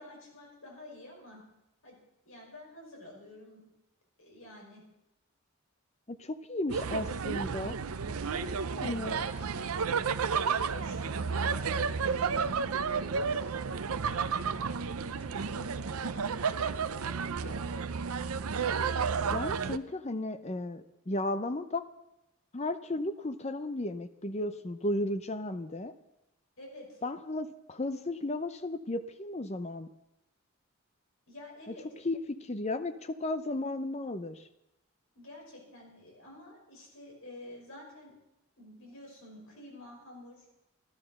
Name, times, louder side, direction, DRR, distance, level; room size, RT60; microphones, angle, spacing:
voice 1, 0.0-1.4 1.8-2.0 2.3-3.7 4.2-4.8 8.1-10.1 10.6-14.5 15.0-17.6 26.6-27.0 31.3-32.1 35.2-38.1 38.6-40.5, left 1 dB, 70° left, -1 dB, 5.5 m, -49 dB
voice 2, 6.1-7.8 8.8-9.1 19.3-21.9 22.5-25.9 27.0-29.9 32.0-34.4, left 2 dB, 30° left, 11 dB, 0.6 m, -34 dB
sound 1, 6.7-19.8, right 5 dB, 80° right, 0.6 m, -32 dB
14.5 x 12.0 x 6.5 m, 0.91 s
head